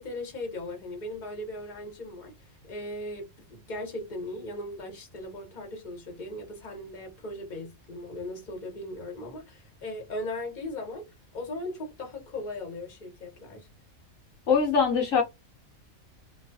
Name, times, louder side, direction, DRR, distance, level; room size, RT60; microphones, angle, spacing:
voice 1, 0.0-2.3 2.6-13.7, left 1 dB, 35° left, 1.1 m, -38 dB
voice 2, 14.5-15.2, left 6 dB, 70° left, 1.1 m, -22 dB
2.6 x 2.3 x 2.6 m
omnidirectional pair, 1.4 m